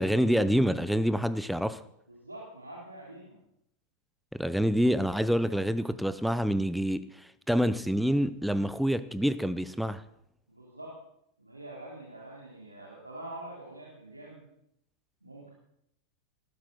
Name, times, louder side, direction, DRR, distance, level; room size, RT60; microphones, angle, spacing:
voice 1, 0.0-1.8 4.3-7.1 7.5-10.0, equal, ahead, 0.7 m, -27 dB
voice 2, 2.1-3.4 10.5-11.0 11.4-14.4 15.2-15.5, right 1 dB, 85° right, 3.3 m, -45 dB
19.0 x 15.0 x 4.0 m
figure-of-eight pair, 90°, 0 cm